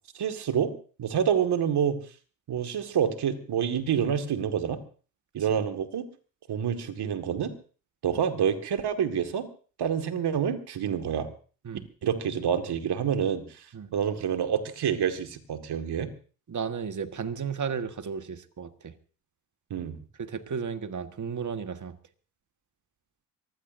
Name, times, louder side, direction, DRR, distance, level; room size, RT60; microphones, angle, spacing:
voice 1, 0.1-0.7 1.0-2.0 2.5-4.8 5.3-6.0 6.5-7.5 8.0-9.5 9.8-11.3 12.0-13.7 13.9-16.1 19.7-19.9, right 8 dB, 60° right, 7 dB, 2.1 m, -27 dB
voice 2, 16.5-18.9 20.2-22.0, right 6 dB, 40° right, 9 dB, 1.7 m, -34 dB
24.0 x 16.0 x 2.7 m, 0.39 s
hypercardioid pair, 50°, 43 cm